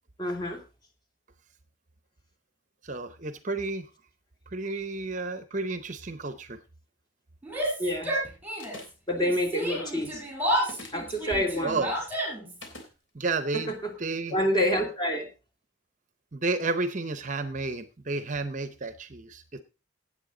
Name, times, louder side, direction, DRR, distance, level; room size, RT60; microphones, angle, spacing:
voice 1, 0.2-0.6 7.8-8.2 9.1-10.2 10.9-11.8 13.5-13.9 14.3-15.3, equal, 20° left, 3 dB, 2.6 m, -28 dB
voice 2, 2.8-3.9 4.5-6.6 11.6-11.9 13.1-13.7 14.0-14.3 16.3-19.6, right 3 dB, 40° right, 11 dB, 0.7 m, -31 dB
Yell, 7.4-8.9 9.2-12.6, equal, 10° right, 5.4 m, -31 dB
sound 1, 8.6-9.1 10.6-11.1 12.6-12.9, left 2 dB, 70° left, 3.4 m, -44 dB
16.5 x 8.6 x 3.8 m, 0.31 s
head